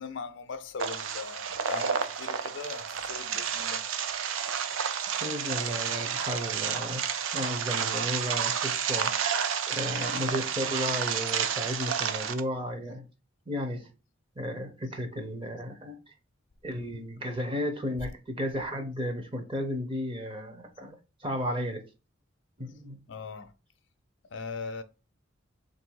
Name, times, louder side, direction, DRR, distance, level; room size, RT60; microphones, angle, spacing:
voice 1, 0.0-3.9 4.5-4.6 23.1-23.5 24.3-24.8, left 4 dB, 65° left, 0.4 m, -40 dB
sound 1, 0.8-12.4, right 7 dB, 80° right, 0.5 m, -30 dB
voice 2, 5.2-7.0 7.3-9.1 9.7-13.0 13.5-13.9 14.4-16.0 16.6-21.8 22.6-23.0, equal, 25° right, 0.7 m, -34 dB
3.4 x 2.6 x 4.5 m
head